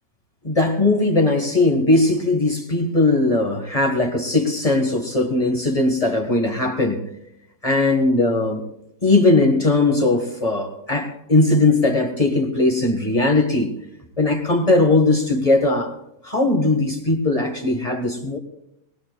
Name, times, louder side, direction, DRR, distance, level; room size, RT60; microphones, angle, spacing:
voice 1, 0.4-7.0 7.6-8.6 9.0-13.7 14.2-15.9 16.2-18.4, left 2 dB, 20° left, 3 dB, 1.6 m, -19 dB
20.5 x 19.5 x 2.4 m, 0.80 s
omnidirectional pair, 1.8 m